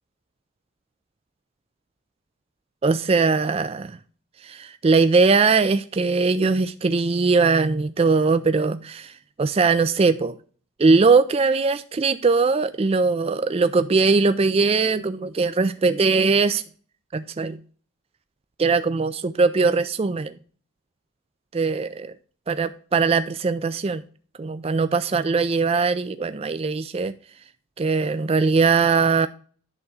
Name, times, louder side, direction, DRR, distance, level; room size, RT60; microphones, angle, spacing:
voice 1, 2.8-4.0 4.4-10.4 10.8-16.6 17.1-17.6 18.6-20.4 21.5-22.1 22.5-24.0 24.4-27.1 27.8-29.3, right 4 dB, 30° right, 0.4 m, -20 dB
10.5 x 3.6 x 6.8 m
head